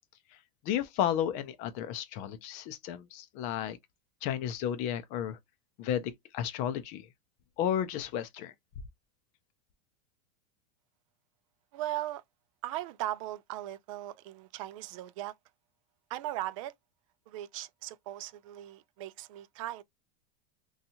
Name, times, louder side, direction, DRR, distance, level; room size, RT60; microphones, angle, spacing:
voice 1, 0.6-3.8 4.2-5.4 5.8-7.1 7.6-8.5, left 10 dB, 40° left, 0.5 m, -33 dB
voice 2, 11.7-12.2 12.6-15.3 16.1-16.7 17.3-19.8, right 14 dB, 55° right, 0.4 m, -38 dB
2.8 x 2.3 x 2.6 m
supercardioid pair, 160°, 20 cm